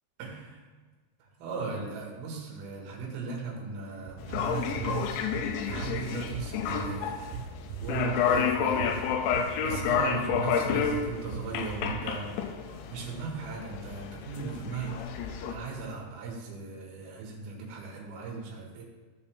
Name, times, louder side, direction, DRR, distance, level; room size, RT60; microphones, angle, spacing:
voice 1, 0.2-0.7 1.2-5.1 5.6-7.3 7.8-9.1 9.6-12.6 12.9-15.0 15.5-18.8, right 4 dB, 65° right, -1 dB, 3.3 m, -37 dB
sound 1, 4.1-12.0, right 6 dB, 85° right, 3.1 m, -39 dB
sound 2, 4.2-15.5, left 7 dB, 90° left, 3.0 m, -30 dB
14.0 x 5.5 x 3.4 m, 1.3 s
omnidirectional pair, 5.3 m